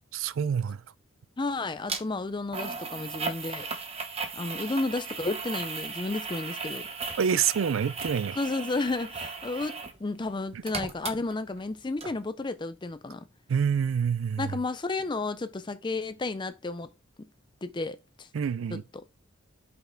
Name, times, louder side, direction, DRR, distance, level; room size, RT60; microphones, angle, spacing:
voice 1, 0.1-0.8 7.2-8.4 13.5-14.5 18.3-18.8, right 7 dB, 70° right, 0.4 m, -27 dB
voice 2, 1.4-3.7 4.3-6.9 8.3-13.3 14.4-16.9 17.2-17.3 17.6-18.3 18.7-19.0, left 3 dB, 20° left, 0.4 m, -32 dB
sound 1, 1.9-2.0 2.5-10.0 10.3-11.7 12.0-12.1, right 4 dB, 30° right, 0.9 m, -36 dB
5.6 x 4.4 x 4.4 m
head